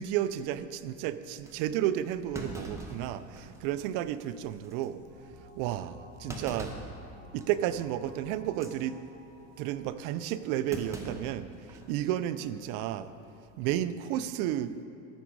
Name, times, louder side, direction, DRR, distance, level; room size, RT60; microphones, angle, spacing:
voice 1, 0.0-5.0 5.5-6.7 7.3-9.0 9.6-13.1 13.6-14.8, right 11 dB, 70° right, 14 dB, 0.5 m, -32 dB
Thump thud, 1.4-1.6 2.3-3.7 4.1-4.2 4.6-4.9 6.3-7.0 7.4-7.7 8.5-8.8 10.7-11.9 12.2-12.3 13.5-13.8, right 1 dB, 10° right, 1.0 m, -42 dB
sound 1, 5.0-11.5, left 1 dB, 65° left, 2.4 m, -54 dB
13.5 x 6.2 x 4.6 m, 2.6 s
cardioid pair, 130°, 34 cm